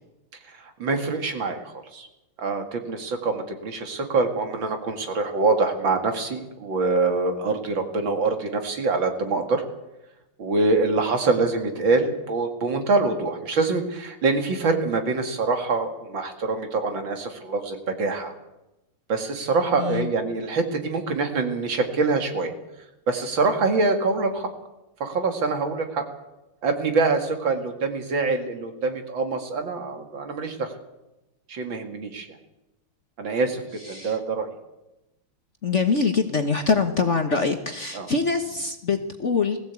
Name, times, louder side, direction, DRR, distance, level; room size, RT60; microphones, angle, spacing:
voice 1, 0.6-2.1 2.4-9.6 10.4-18.3 19.1-22.5 23.1-24.5 25.0-26.0 26.6-30.7 31.5-32.3 33.2-33.6 33.9-34.5 37.9-38.1, right 3 dB, 65° right, 5 dB, 2.9 m, -25 dB
voice 2, 19.8-20.1 33.8-34.2 35.6-39.7, left 4 dB, 40° left, 6 dB, 1.3 m, -24 dB
20.5 x 15.5 x 8.3 m, 0.97 s
omnidirectional pair, 2.3 m